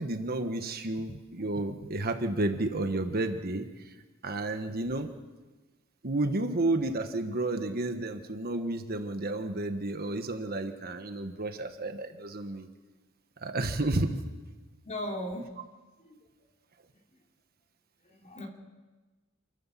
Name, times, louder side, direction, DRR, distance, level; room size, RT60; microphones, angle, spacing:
voice 1, 0.0-3.9 4.2-5.1 6.0-12.7 13.4-14.2, right 2 dB, 45° right, 7 dB, 1.4 m, -31 dB
voice 2, 14.8-15.5 18.0-18.5, left 1 dB, 35° left, 1 dB, 3.3 m, -36 dB
28.5 x 12.5 x 7.6 m, 1.3 s
head